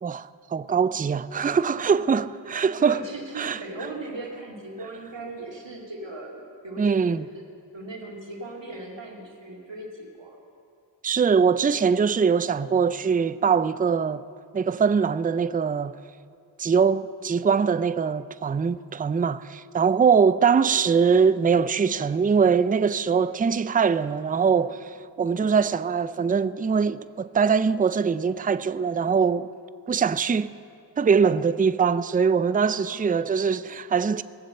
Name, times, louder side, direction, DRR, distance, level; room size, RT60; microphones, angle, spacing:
voice 1, 0.0-3.0 3.4-3.6 6.8-7.3 11.0-14.2 14.5-16.0 16.6-29.5 29.9-30.5 31.0-34.2, right 6 dB, 20° right, 0.3 m, -22 dB
voice 2, 2.8-7.5 7.7-10.4 32.4-33.1, right 2 dB, 70° right, 2.5 m, -38 dB
19.0 x 7.5 x 7.8 m
wide cardioid pair, 60°, 46 cm